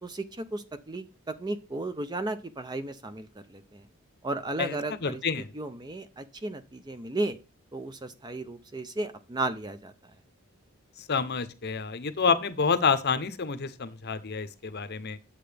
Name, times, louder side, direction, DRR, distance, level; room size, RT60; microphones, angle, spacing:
voice 1, 0.0-3.9 4.2-7.4 7.7-9.9, right 2 dB, 20° right, 10 dB, 0.5 m, -34 dB
voice 2, 4.6-5.5 11.1-15.2, left 5 dB, 45° left, 12 dB, 0.7 m, -28 dB
9.9 x 7.7 x 3.4 m, 0.31 s
head